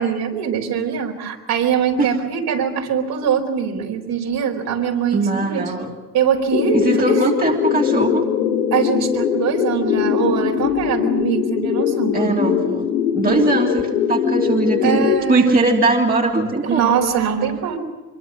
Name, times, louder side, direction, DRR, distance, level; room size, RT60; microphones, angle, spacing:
voice 1, 0.0-5.6 6.1-7.2 8.7-12.4 13.3-13.4 14.8-15.5 16.7-17.8, right 7 dB, 50° right, 2 dB, 4.7 m, -22 dB
voice 2, 5.1-5.9 6.7-8.2 12.1-17.0, right 3 dB, 20° right, 0 dB, 3.1 m, -20 dB
sound 1, 6.5-15.2, left 8 dB, 75° left, 2.5 m, -21 dB
25.5 x 23.5 x 6.3 m, 1.2 s
figure-of-eight pair, 65°, 46 cm